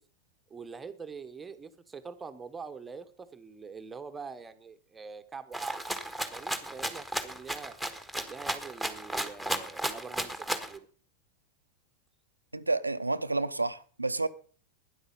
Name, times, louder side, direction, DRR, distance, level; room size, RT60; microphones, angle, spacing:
voice 1, 0.5-5.9 6.3-7.7 8.3-10.9, right 5 dB, 15° right, 1.1 m, -44 dB
Rattle (instrument), 5.5-10.8, right 1 dB, 5° left, 1.5 m, -34 dB
voice 2, 12.5-14.3, right 2 dB, 85° right, 0.7 m, -30 dB
12.5 x 10.0 x 5.5 m
figure-of-eight pair, 90°, 0 cm